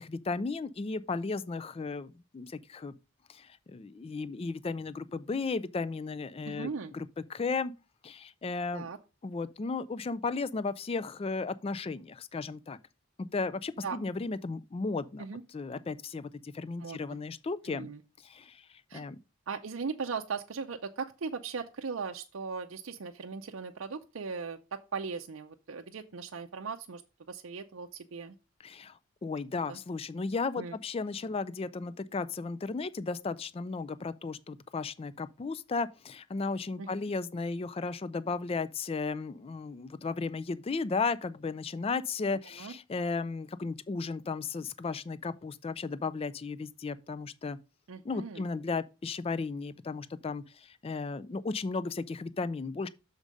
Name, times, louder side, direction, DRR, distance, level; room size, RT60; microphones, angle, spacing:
voice 1, 0.0-2.9 3.3-7.7 8.0-8.9 9.2-12.8 13.2-15.2 15.5-17.9 18.2-18.6 18.9-19.2 28.6-28.9 29.2-47.6 48.0-52.9, left 4 dB, 25° left, 0.3 m, -35 dB
voice 2, 6.4-6.9 8.7-9.0 13.8-14.0 15.2-15.4 16.8-17.0 17.7-18.0 18.9-19.1 19.5-27.0 27.3-28.4 29.7-29.8 30.6-30.8 36.8-36.9 42.6-42.8 47.9-48.4, right 5 dB, 70° right, 0.5 m, -38 dB
6.5 x 4.8 x 5.1 m
head